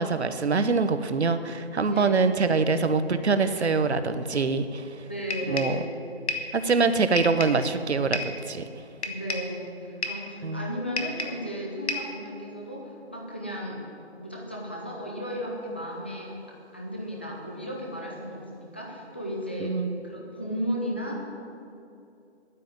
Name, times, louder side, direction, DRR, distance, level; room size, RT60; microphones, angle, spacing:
voice 1, 0.0-4.9 5.5-5.8 6.5-8.2 8.5-8.6 10.4-10.7 19.6-20.0, right 4 dB, 70° right, 10 dB, 1.0 m, -24 dB
voice 2, 1.8-2.3 3.6-3.7 5.0-6.1 9.0-13.8 14.2-16.3 16.7-19.8 20.0-21.3, equal, 10° left, -3 dB, 0.6 m, -35 dB
sound 1, 5.3-5.8 6.3-6.5 7.2-7.6 8.1-8.4 9.0-9.5 10.0-10.3 11.0-11.5 11.9-12.2, left 3 dB, 75° left, 1.8 m, -31 dB
9.9 x 9.3 x 9.4 m, 2.7 s
figure-of-eight pair, 165°, 34 cm